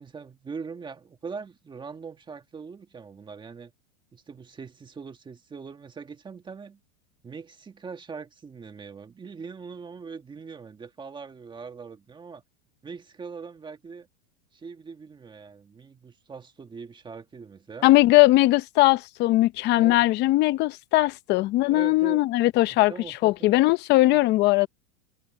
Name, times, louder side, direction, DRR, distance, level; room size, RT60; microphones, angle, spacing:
voice 1, 0.0-3.7 4.1-6.8 7.2-12.4 12.8-14.1 14.5-17.9 19.7-20.0 21.7-22.3 22.9-23.5, right 5 dB, 15° right, 1.6 m, -41 dB
voice 2, 17.8-24.7, left 18 dB, 30° left, 0.7 m, -20 dB
supercardioid pair, 155°, 36 cm